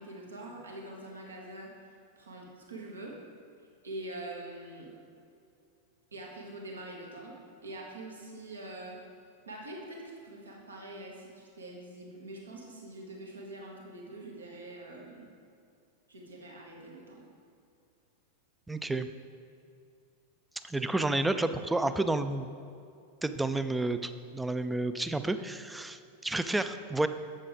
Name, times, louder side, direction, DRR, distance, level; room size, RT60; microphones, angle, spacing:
voice 1, 0.0-3.2 3.8-5.0 6.1-7.4 7.6-9.0 9.4-15.3 16.1-17.3, right 1 dB, 75° right, -1 dB, 1.4 m, -44 dB
voice 2, 18.7-19.1 20.6-22.5 23.2-27.1, right 2 dB, 5° right, 10 dB, 0.4 m, -30 dB
7.6 x 7.6 x 4.8 m, 2.4 s
figure-of-eight pair, 90°, 0 cm